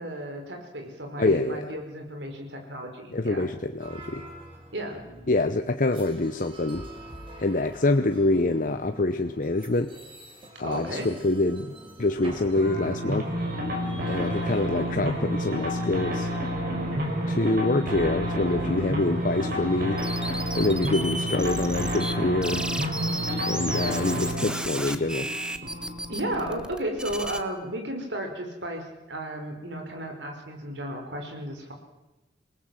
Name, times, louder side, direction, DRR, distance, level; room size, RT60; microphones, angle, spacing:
voice 1, 0.0-3.5 4.7-5.0 10.6-11.1 26.1-31.7, right 1 dB, 75° right, 3 dB, 5.0 m, -34 dB
voice 2, 1.2-1.7 3.1-4.3 5.3-6.9 7.4-9.9 10.6-13.3 14.1-16.3 17.3-20.0 20.6-22.7 23.4-25.3, left 2 dB, 45° left, 7 dB, 0.9 m, -26 dB
sound 1, 3.8-19.8, right 1 dB, 30° right, 4.7 m, -44 dB
sound 2, 12.5-26.6, equal, 55° right, 5.7 m, -30 dB
sound 3, 20.0-22.1 22.4-27.4, right 1 dB, 5° right, 1.2 m, -33 dB
27.0 x 18.5 x 7.7 m, 1.0 s
head